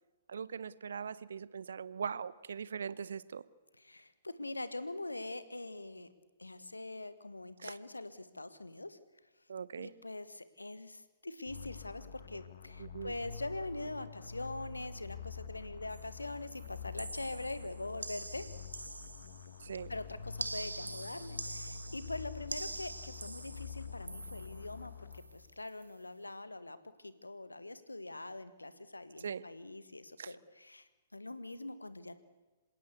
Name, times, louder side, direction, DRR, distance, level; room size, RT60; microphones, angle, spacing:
voice 1, 0.3-3.4 7.6-7.8 9.5-9.9 12.8-13.1 19.6-19.9 29.2-29.4 30.2-30.3, right 6 dB, 60° right, 19 dB, 0.8 m, -41 dB
voice 2, 3.8-6.1 6.4-9.0 9.8-18.5 19.9-26.8 27.0-32.2, left 2 dB, 80° left, 13 dB, 1.6 m, -43 dB
sound 1, 11.5-25.6, left 6 dB, 60° left, 1.9 m, -47 dB
sound 2, 15.9-16.2 16.5-19.6 20.4-24.7 25.1-25.4 25.7-25.9, right 2 dB, 80° right, 1.3 m, -45 dB
27.0 x 17.0 x 8.2 m, 1.2 s
figure-of-eight pair, 115°, 0 cm